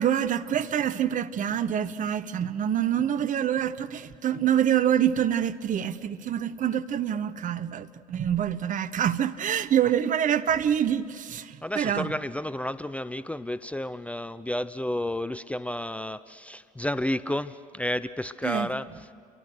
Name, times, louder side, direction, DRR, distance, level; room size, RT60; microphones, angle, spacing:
voice 1, 0.0-12.1 18.4-18.7, right 9 dB, 40° right, 1.0 m, -26 dB
voice 2, 11.6-19.1, left 1 dB, 5° left, 0.6 m, -31 dB
29.5 x 23.0 x 6.5 m
figure-of-eight pair, 60°, 20 cm